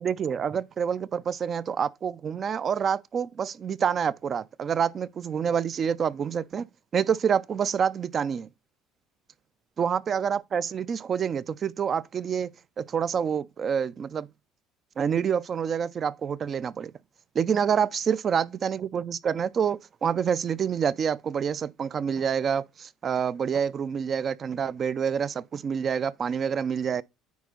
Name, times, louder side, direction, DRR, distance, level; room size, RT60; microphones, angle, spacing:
voice 1, 0.0-6.7 6.9-8.5 9.8-14.3 15.0-16.9 17.3-27.0, right 7 dB, 40° right, 0.4 m, -27 dB
9.4 x 4.1 x 3.8 m
cardioid pair, 110°, 0 cm